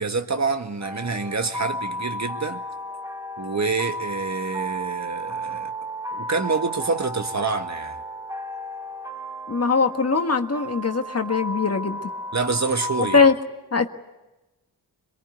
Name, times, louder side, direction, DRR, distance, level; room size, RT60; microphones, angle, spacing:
voice 1, 0.0-2.6 3.4-5.7 6.1-8.0 12.3-13.3, right 4 dB, 40° right, 1.8 m, -27 dB
sound 1, 0.8-13.3, equal, 10° right, 1.7 m, -33 dB
voice 2, 9.5-12.1 13.0-13.3 13.7-13.9, left 4 dB, 35° left, 1.7 m, -21 dB
23.0 x 22.0 x 9.3 m
supercardioid pair, 50°, 42 cm